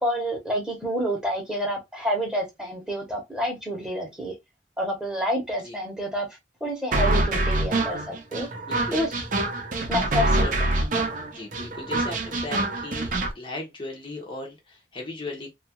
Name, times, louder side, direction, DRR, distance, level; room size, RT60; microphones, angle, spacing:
voice 1, 0.0-4.3 4.8-6.3 6.6-8.5 8.9-9.1 9.9-10.7, equal, 5° right, 0.8 m, -28 dB
sound 1, 6.9-13.3, right 2 dB, 45° right, 0.5 m, -25 dB
voice 2, 8.7-9.0 10.4-10.5 11.3-13.1 13.3-15.5, left 2 dB, 30° left, 0.6 m, -37 dB
2.6 x 2.3 x 2.8 m
head